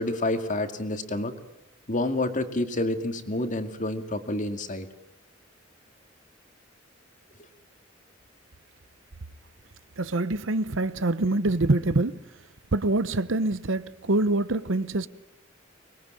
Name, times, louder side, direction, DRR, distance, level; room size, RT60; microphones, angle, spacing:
voice 1, 0.0-1.3 1.9-4.9, left 1 dB, 40° left, 2.2 m, -28 dB
voice 2, 10.0-12.2 12.7-15.1, right 2 dB, 75° right, 0.9 m, -25 dB
24.5 x 21.5 x 8.9 m
head